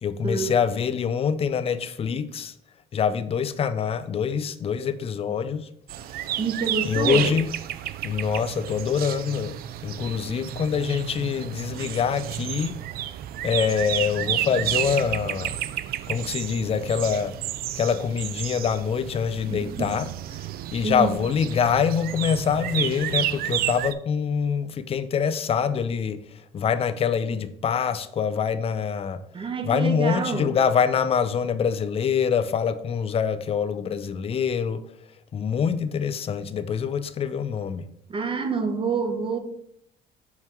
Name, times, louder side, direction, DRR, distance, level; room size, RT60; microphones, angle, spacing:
voice 1, 0.0-2.5 2.9-5.7 6.8-7.5 8.0-9.5 9.8-12.8 13.4-15.6 16.1-17.3 17.8-20.1 20.7-29.2 29.6-34.8 35.3-37.8, left 7 dB, 35° left, 0.5 m, -25 dB
sound 1, 5.9-23.9, right 12 dB, 65° right, 0.4 m, -31 dB
voice 2, 6.4-7.3 19.5-19.9 20.8-21.1 29.3-30.6 38.1-39.4, right 4 dB, 30° right, 1.0 m, -27 dB
5.6 x 4.4 x 4.6 m
cardioid pair, 110°, 17 cm